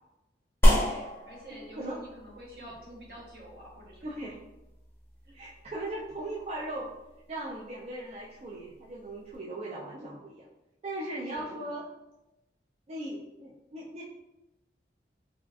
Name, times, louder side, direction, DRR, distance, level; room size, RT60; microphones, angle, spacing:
sound 1, 0.6-9.4, equal, 15° left, 0.6 m, -31 dB
voice 1, 0.6-4.1 5.2-5.4 11.2-11.7, equal, 60° right, -3 dB, 0.8 m, -47 dB
voice 2, 1.5-2.0 4.0-4.4 5.3-6.9 7.3-10.5 10.8-11.8 12.9-14.0, right 1 dB, 35° right, -5 dB, 0.3 m, -38 dB
3.5 x 2.3 x 2.4 m, 0.94 s
head